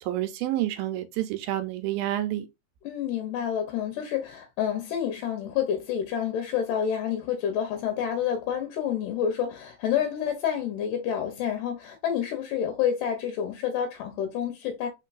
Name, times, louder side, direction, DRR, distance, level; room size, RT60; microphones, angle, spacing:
voice 1, 0.0-2.5, right 14 dB, 80° right, 2.3 m, -29 dB
voice 2, 2.8-14.9, left 9 dB, 75° left, 2.0 m, -28 dB
4.5 x 4.4 x 2.4 m
omnidirectional pair, 4.4 m